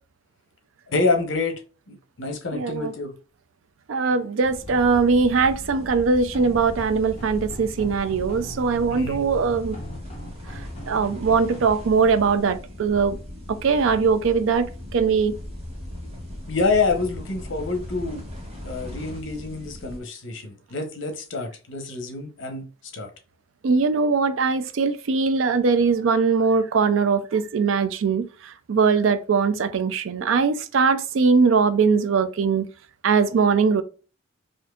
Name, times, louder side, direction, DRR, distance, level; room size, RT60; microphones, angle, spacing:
voice 1, 0.9-1.6 1.9-3.1 8.9-9.2 16.5-18.2 18.6-22.7 22.9-23.1, left 3 dB, 70° left, 0.9 m, -27 dB
voice 2, 2.5-2.9 3.9-9.8 10.9-13.2 13.5-15.3 23.6-32.6 33.0-33.8, right 5 dB, 80° right, 0.4 m, -21 dB
sound 1, 4.4-20.0, left 1 dB, 30° right, 1.4 m, -38 dB
sound 2, 4.7-11.7, right 1 dB, 35° left, 0.9 m, -42 dB
4.3 x 2.6 x 2.3 m
head